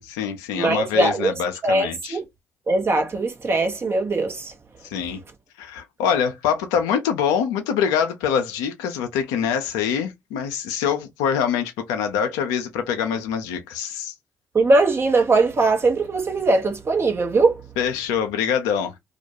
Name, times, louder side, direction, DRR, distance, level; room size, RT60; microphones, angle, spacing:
voice 1, 0.0-2.2 4.8-5.2 5.6-14.1 17.8-18.9, left 7 dB, 80° left, 0.5 m, -24 dB
voice 2, 0.6-1.3 1.6-2.2 2.7-4.5 14.5-17.6, right 3 dB, 40° right, 0.8 m, -20 dB
2.4 x 2.1 x 2.7 m
hypercardioid pair, 45°, 6 cm